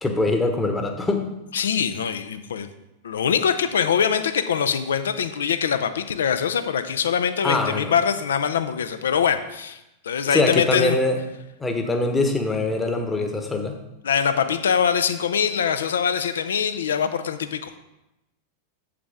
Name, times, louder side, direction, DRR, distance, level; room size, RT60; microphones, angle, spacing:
voice 1, 0.0-1.3 7.4-7.9 10.3-11.2 11.6-13.8, left 2 dB, 10° left, 5 dB, 1.1 m, -23 dB
voice 2, 1.5-2.7 3.0-11.0 14.0-17.8, left 7 dB, 65° left, 10 dB, 0.5 m, -23 dB
8.5 x 7.4 x 3.5 m, 0.92 s
figure-of-eight pair, 90°, 0 cm